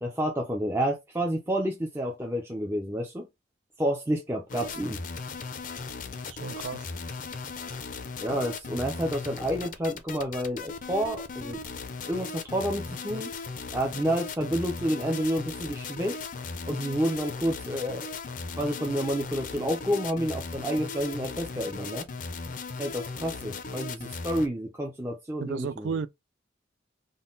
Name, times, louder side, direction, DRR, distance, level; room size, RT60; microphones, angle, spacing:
voice 1, 0.0-3.3 3.8-5.0 8.2-11.6 12.1-13.3 13.7-16.2 16.7-18.1 18.6-22.1 22.8-26.0, equal, 10° right, 0.5 m, -29 dB
sound 1, 4.5-24.5, left 4 dB, 45° left, 0.5 m, -37 dB
voice 2, 6.4-6.8 25.4-26.1, right 6 dB, 70° right, 0.3 m, -32 dB
3.8 x 2.2 x 3.8 m
head